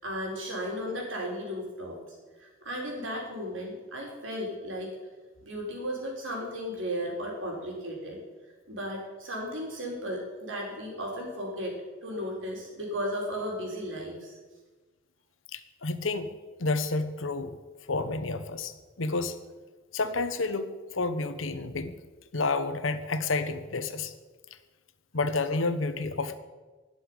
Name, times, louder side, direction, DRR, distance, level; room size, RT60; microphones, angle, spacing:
voice 1, 0.0-2.0 2.4-4.9 5.4-8.2 8.7-11.7 12.0-14.4, equal, 70° right, -1 dB, 4.1 m, -35 dB
voice 2, 15.5-16.3 16.6-17.6 17.9-19.4 19.9-22.0 22.3-24.1 25.1-26.4, left 3 dB, 90° left, 10 dB, 1.1 m, -30 dB
11.5 x 7.0 x 9.7 m, 1.3 s
head